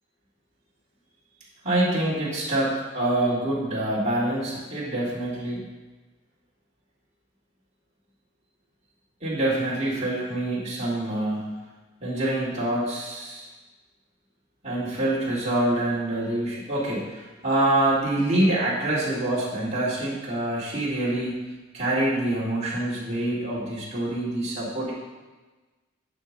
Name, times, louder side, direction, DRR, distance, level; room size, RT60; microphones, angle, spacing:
voice 1, 1.6-5.7 9.2-11.6 12.0-13.5 14.6-21.4 21.7-24.9, right 1 dB, 30° right, -8 dB, 2.3 m, -26 dB
11.5 x 5.4 x 3.7 m, 1.2 s
head